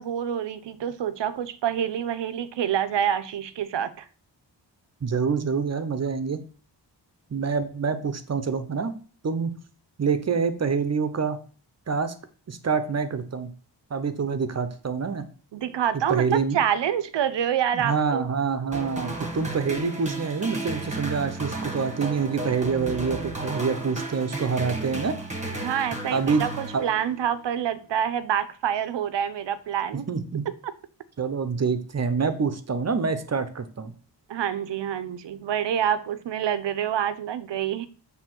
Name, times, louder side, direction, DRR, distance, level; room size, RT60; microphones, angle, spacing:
voice 1, 0.0-4.1 15.5-18.3 25.6-30.1 34.3-37.9, right 9 dB, 80° right, 0.7 m, -27 dB
voice 2, 5.0-6.4 7.3-8.9 9.2-9.6 10.0-11.4 11.9-12.1 12.5-13.5 13.9-15.2 16.1-16.6 17.7-25.2 26.1-26.5 26.7-26.8 30.1-30.5 31.2-33.9, right 5 dB, 35° right, 0.8 m, -26 dB
sound 1, 18.7-27.3, right 2 dB, 15° right, 1.4 m, -34 dB
6.8 x 3.5 x 6.0 m
wide cardioid pair, 115°, 43 cm